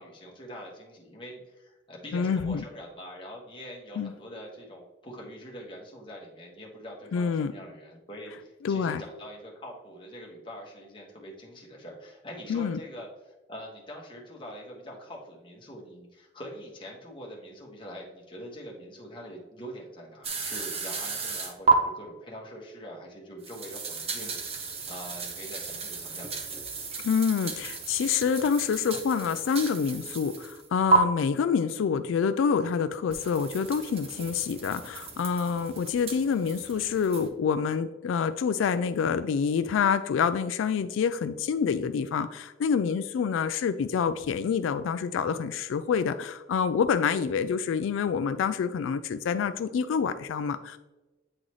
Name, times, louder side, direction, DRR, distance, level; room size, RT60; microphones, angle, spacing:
voice 1, 0.0-26.4 31.4-31.5, equal, 25° left, -2 dB, 1.4 m, -44 dB
voice 2, 2.1-2.6 4.0-4.1 7.1-7.5 8.6-9.0 12.5-12.8 27.0-50.8, left 6 dB, 90° left, 11 dB, 0.3 m, -27 dB
sound 1, 20.2-21.7 23.4-30.7 30.9-31.0 33.1-37.3, right 4 dB, 30° right, 0.8 m, -32 dB
8.6 x 3.9 x 3.1 m, 1.1 s
head